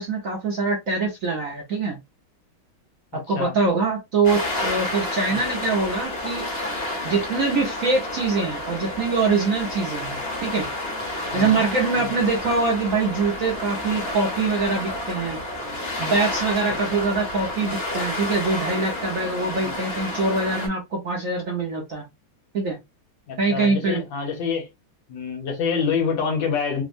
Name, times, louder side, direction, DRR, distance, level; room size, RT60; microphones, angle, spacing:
voice 1, 0.0-2.0 3.1-6.4 7.0-10.1 10.4-10.7 11.3-15.4 16.0-22.0 22.5-22.8 23.4-24.0, right 4 dB, 60° right, 0.9 m, -24 dB
voice 2, 3.1-3.5 5.3-5.4 10.1-10.2 11.3-11.6 12.0-12.2 16.9-17.1 19.6-19.8 23.3-24.7 25.1-26.8, left 6 dB, 70° left, 1.5 m, -27 dB
sound 1, 4.2-20.7, left 1 dB, 40° left, 0.9 m, -30 dB
3.5 x 2.1 x 2.5 m
omnidirectional pair, 2.2 m